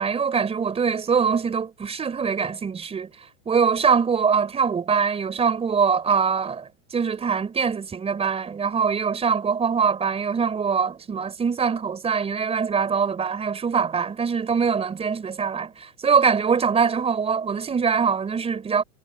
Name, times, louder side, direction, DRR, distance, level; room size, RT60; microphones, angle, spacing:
voice 1, 0.0-3.1 3.5-18.8, right 6 dB, 15° right, 4.4 m, -23 dB
supercardioid pair, 145°, 40 cm